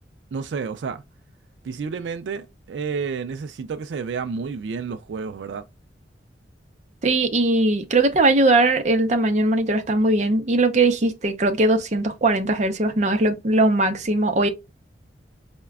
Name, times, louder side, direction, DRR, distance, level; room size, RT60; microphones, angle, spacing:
voice 1, 0.3-1.0 1.6-5.7, right 5 dB, 85° right, 0.4 m, -30 dB
voice 2, 7.0-14.5, right 2 dB, 40° right, 0.6 m, -20 dB
4.7 x 2.2 x 2.3 m
head